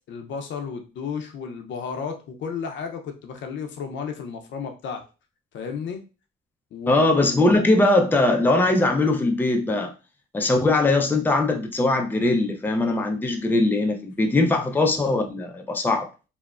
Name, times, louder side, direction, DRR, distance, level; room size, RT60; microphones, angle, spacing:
voice 1, 0.1-5.0 5.5-6.0 6.7-7.0, left 6 dB, 70° left, 0.6 m, -33 dB
voice 2, 6.9-9.9 10.3-16.1, left 2 dB, 10° left, 0.5 m, -21 dB
3.0 x 2.1 x 2.4 m
cardioid pair, 90°, 20 cm